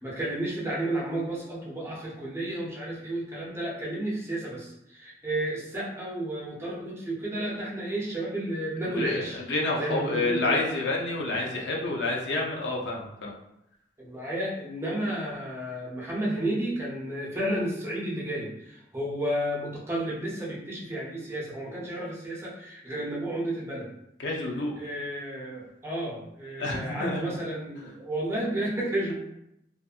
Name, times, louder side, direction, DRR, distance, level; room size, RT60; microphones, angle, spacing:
voice 1, 0.0-9.4 9.7-10.6 14.0-23.9 24.8-29.1, right 1 dB, 15° right, -6 dB, 0.6 m, -32 dB
voice 2, 8.8-13.3 24.2-24.7 26.6-27.2, left 2 dB, 85° left, -1 dB, 0.6 m, -29 dB
2.6 x 2.4 x 2.4 m, 0.82 s
head